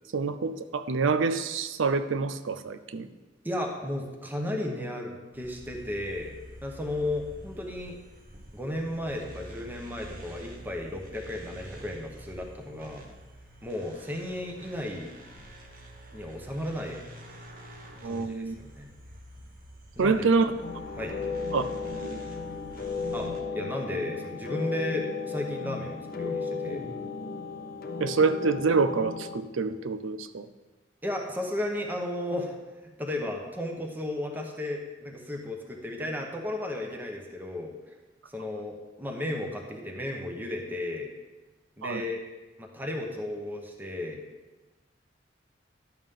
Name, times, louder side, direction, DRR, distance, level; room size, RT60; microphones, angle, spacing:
voice 1, 0.1-3.1 18.0-18.6 20.0-20.6 21.5-21.6 21.9-22.2 28.0-30.5 41.8-42.0, right 4 dB, 80° right, 12 dB, 0.5 m, -26 dB
voice 2, 3.4-6.3 6.6-8.0 8.5-13.1 13.6-15.1 16.1-17.0 18.0-18.9 20.0-20.2 21.0-21.1 23.1-26.8 31.0-32.6 32.8-37.7 38.3-41.1 41.8-42.2 42.6-44.2, left 1 dB, 10° right, 1 dB, 0.9 m, -34 dB
sound 1, 5.3-23.4, right 1 dB, 45° right, 1.1 m, -47 dB
sound 2, 20.6-29.4, left 4 dB, 50° left, 0.7 m, -35 dB
11.0 x 7.2 x 3.6 m, 1.2 s
head